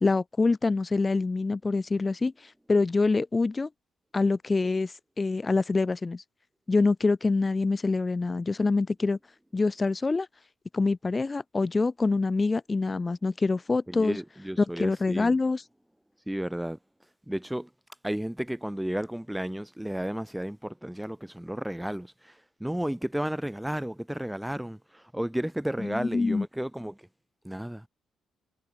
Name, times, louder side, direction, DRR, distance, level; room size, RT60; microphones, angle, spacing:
voice 1, 0.0-3.7 4.1-6.2 6.7-9.2 9.5-10.3 10.7-14.2 14.6-15.6 25.9-26.5, left 3 dB, 25° left, 0.3 m, -25 dB
voice 2, 13.9-15.3 16.3-16.8 17.3-17.7 18.0-27.1 27.4-27.9, right 1 dB, 5° right, 0.9 m, -33 dB
cardioid pair, 90°, 0 cm